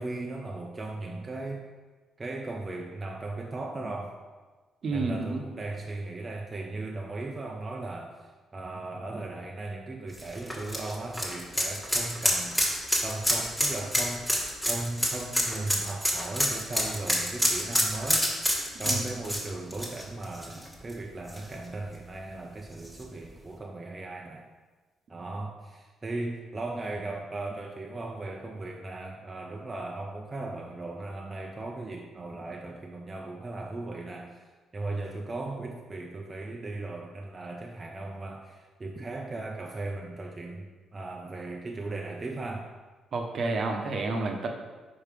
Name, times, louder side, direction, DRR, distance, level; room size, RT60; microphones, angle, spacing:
voice 1, 0.0-1.6 2.2-4.2 4.9-12.6 13.0-14.3 14.7-18.3 18.8-24.5 25.1-42.7, right 2 dB, 30° right, 0 dB, 0.6 m, -37 dB
voice 2, 4.8-5.4 18.8-19.0 43.1-44.5, right 3 dB, 55° right, 2 dB, 0.9 m, -30 dB
sound 1, 10.1-20.9 21.3-21.4 22.8-22.9, equal, 5° left, 1.5 m, -27 dB
5.0 x 4.3 x 5.0 m, 1.3 s
cardioid pair, 90°, 0 cm